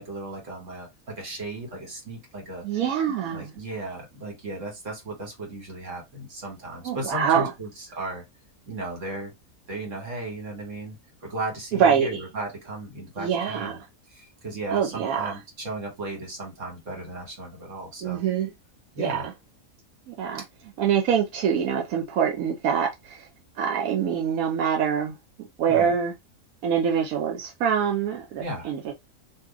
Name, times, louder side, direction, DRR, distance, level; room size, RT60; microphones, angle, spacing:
voice 1, 0.0-2.6 3.3-8.2 8.7-9.3 9.7-13.8 14.2-18.2 19.0-19.2 25.7-25.9 28.4-28.7, right 2 dB, 60° right, 1.7 m, -35 dB
voice 2, 2.6-3.5 6.8-7.5 11.7-12.2 13.2-13.8 14.7-15.4 18.0-18.5 19.0-19.3 20.1-20.4 20.8-23.3 23.6-26.1 26.6-28.9, right 7 dB, 85° right, 1.1 m, -25 dB
2.8 x 2.5 x 3.7 m
omnidirectional pair, 1.5 m